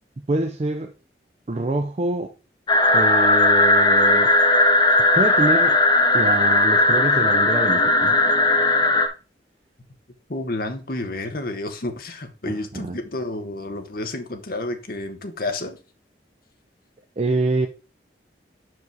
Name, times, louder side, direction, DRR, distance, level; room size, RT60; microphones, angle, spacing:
voice 1, 0.3-0.9 1.5-2.3 2.9-4.4 5.1-5.8 6.1-8.2 12.5-13.0 17.2-17.7, right 2 dB, 35° right, 0.4 m, -25 dB
sound 1, 2.7-9.1, left 2 dB, 25° left, 0.6 m, -17 dB
voice 2, 10.3-15.8, left 2 dB, 55° left, 1.0 m, -30 dB
5.4 x 4.8 x 4.6 m
head